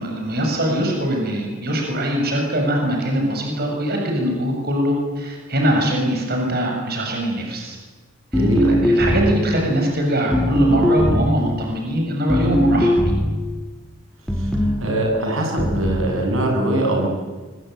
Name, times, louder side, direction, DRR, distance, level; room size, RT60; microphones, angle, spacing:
voice 1, 0.0-7.8 8.3-13.0, equal, 50° right, 1 dB, 7.3 m, -22 dB
sound 1, 8.3-9.5 10.3-11.4 12.3-13.4 14.3-14.8 15.6-16.2, equal, ahead, 2.2 m, -19 dB
voice 2, 8.3-8.8 14.3-17.1, right 1 dB, 75° right, 1 dB, 7.4 m, -22 dB
25.0 x 25.0 x 9.4 m, 1.4 s
head